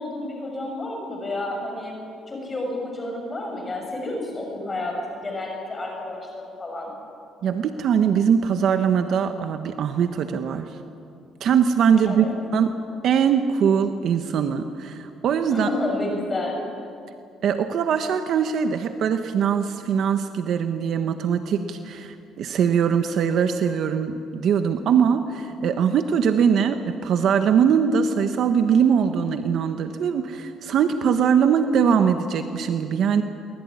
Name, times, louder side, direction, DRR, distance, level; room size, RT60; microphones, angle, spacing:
voice 1, 0.0-1.9 2.3-4.9 5.2-6.9 12.1-12.3 15.5-16.6, left 2 dB, 20° left, 0 dB, 6.4 m, -30 dB
voice 2, 7.4-10.8 11.4-12.3 12.5-12.8 13.0-15.7 17.4-33.2, right 7 dB, 60° right, 7 dB, 1.3 m, -21 dB
23.5 x 21.5 x 9.8 m, 2.5 s
cardioid pair, 125°, 0 cm